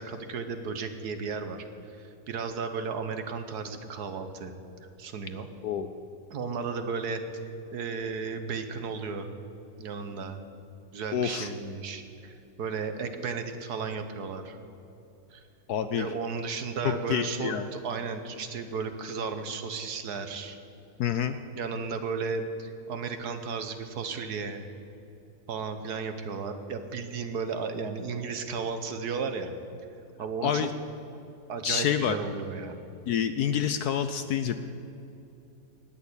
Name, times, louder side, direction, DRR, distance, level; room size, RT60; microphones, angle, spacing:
voice 1, 0.0-1.6 2.0-4.5 5.0-5.5 6.3-7.4 7.7-9.3 9.8-10.4 10.9-14.6 15.3-15.4 15.9-20.6 21.6-24.6 25.5-29.5 30.2-30.7 31.5-32.7, right 5 dB, 60° right, 8 dB, 1.4 m, -34 dB
voice 2, 11.1-11.5 15.7-16.1 16.8-17.7 21.0-21.4 30.4-30.7 31.6-32.2 33.1-34.5, left 9 dB, 70° left, 10 dB, 1.0 m, -27 dB
18.0 x 6.6 x 9.7 m, 2.9 s
omnidirectional pair, 2.0 m